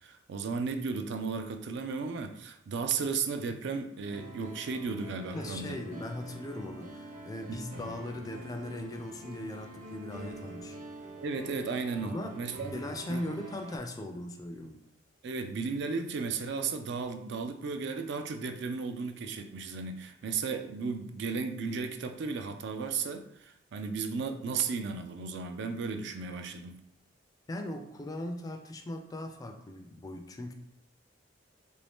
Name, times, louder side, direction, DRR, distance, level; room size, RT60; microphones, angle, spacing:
voice 1, 0.0-6.1 7.5-7.7 11.2-12.8 13.1-13.2 15.2-26.8, right 5 dB, 65° right, 7 dB, 0.4 m, -35 dB
sound 1, 4.0-13.8, right 1 dB, 45° right, 0.8 m, -46 dB
voice 2, 5.3-10.8 12.0-12.3 12.7-14.8 27.5-30.5, left 1 dB, 20° left, 5 dB, 0.3 m, -39 dB
3.0 x 2.6 x 3.4 m, 0.73 s
head